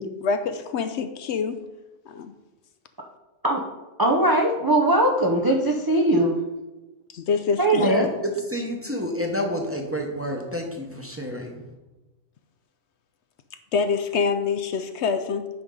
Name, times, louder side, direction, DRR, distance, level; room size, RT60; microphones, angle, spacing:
voice 1, 0.2-1.6 2.1-2.3 7.1-7.9 13.7-15.5, left 5 dB, 70° left, 9 dB, 0.8 m, -25 dB
voice 2, 4.0-6.4 7.6-8.1, right 1 dB, 30° right, 1 dB, 0.4 m, -20 dB
voice 3, 7.9-11.6, equal, 10° right, 0 dB, 0.8 m, -29 dB
8.6 x 5.4 x 3.7 m, 1.1 s
omnidirectional pair, 1.3 m